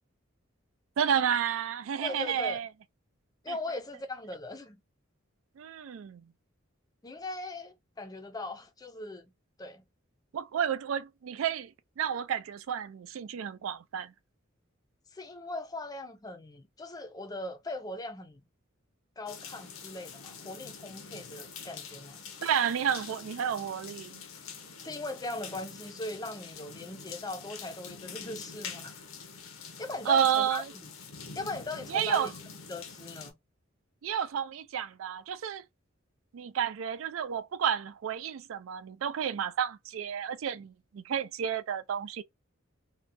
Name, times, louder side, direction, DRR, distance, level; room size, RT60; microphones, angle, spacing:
voice 1, 1.0-2.7 3.5-3.6 5.6-6.2 10.3-14.1 22.4-24.2 30.1-30.6 31.9-32.3 34.0-35.6 36.3-42.2, right 8 dB, 75° right, 0.4 m, -31 dB
voice 2, 2.0-2.6 3.4-4.8 7.0-9.3 9.6-9.8 15.1-18.4 19.2-22.2 24.8-29.0 29.8-30.9 31.3-32.3 32.7-33.3, left 2 dB, 20° left, 0.5 m, -39 dB
sound 1, 19.3-33.3, left 6 dB, 85° left, 0.7 m, -45 dB
2.8 x 2.2 x 2.4 m
head